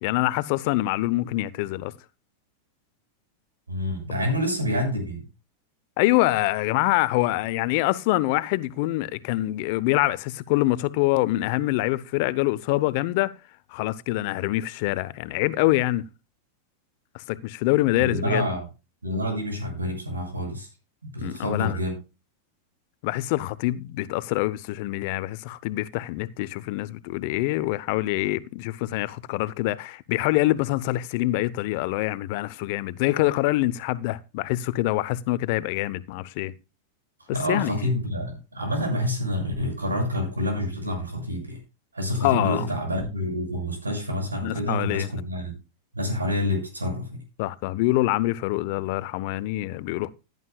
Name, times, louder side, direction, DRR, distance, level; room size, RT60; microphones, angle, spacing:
voice 1, 0.0-1.9 6.0-13.3 13.7-16.1 17.1-18.4 21.2-21.8 23.0-36.5 37.3-37.9 42.2-42.7 44.4-45.1 47.4-50.1, left 17 dB, 55° left, 0.8 m, -25 dB
voice 2, 3.7-5.2 17.9-18.6 19.0-20.7 21.0-21.9 37.2-41.6 41.9-45.5 45.9-47.1, left 1 dB, 90° right, 6.6 m, -28 dB
16.5 x 11.0 x 2.3 m
hypercardioid pair, 95°, 0 cm